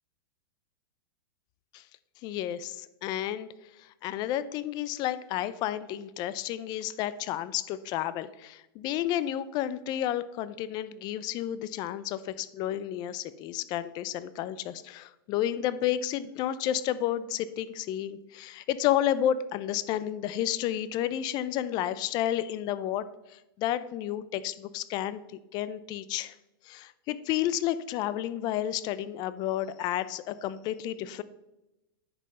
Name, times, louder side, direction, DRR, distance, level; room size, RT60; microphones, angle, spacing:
voice 1, 2.2-3.5 3.8-26.3 26.6-31.2, left 11 dB, 35° left, 16 dB, 0.5 m, -31 dB
9.6 x 5.3 x 5.5 m, 0.96 s
hypercardioid pair, 140°, 12 cm